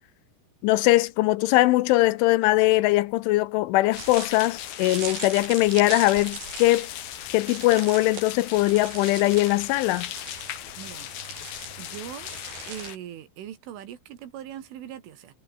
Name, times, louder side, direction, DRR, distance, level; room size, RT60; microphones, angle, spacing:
voice 1, 0.6-6.9 7.3-10.1, left 18 dB, 80° left, 3.0 m, -21 dB
sound 1, 3.9-13.0, left 12 dB, 60° left, 2.9 m, -38 dB
sound 2, 4.0-12.9, right 5 dB, 50° right, 7.7 m, -40 dB
voice 2, 10.8-11.1 11.8-12.3 12.7-15.3, right 11 dB, 75° right, 4.8 m, -40 dB
omnidirectional pair, 5.8 m